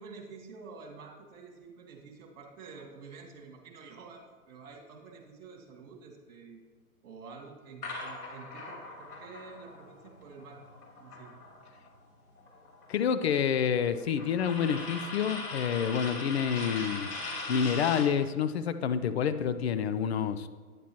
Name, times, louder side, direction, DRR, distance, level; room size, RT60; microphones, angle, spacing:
voice 1, 0.0-6.6 7.0-10.7 11.0-11.3, right 4 dB, 55° right, 1 dB, 2.2 m, -49 dB
sound 1, 7.8-11.9 12.2-18.2, left 3 dB, 75° left, 3.0 m, -40 dB
voice 2, 12.9-17.1 17.5-20.5, left 7 dB, 45° left, 12 dB, 0.5 m, -28 dB
9.9 x 9.0 x 3.0 m, 1.5 s
hypercardioid pair, 130°, 45 cm